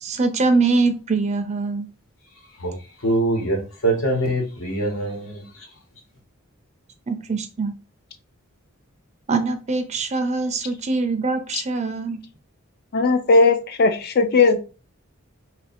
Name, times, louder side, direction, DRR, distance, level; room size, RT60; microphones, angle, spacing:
voice 1, 0.0-1.9 7.1-7.7 9.3-12.2, right 3 dB, 30° right, 0.5 m, -23 dB
voice 2, 3.0-5.4, right 1 dB, 75° left, 1.3 m, -23 dB
voice 3, 12.9-14.6, left 3 dB, 45° left, 0.5 m, -17 dB
3.1 x 2.6 x 4.1 m
head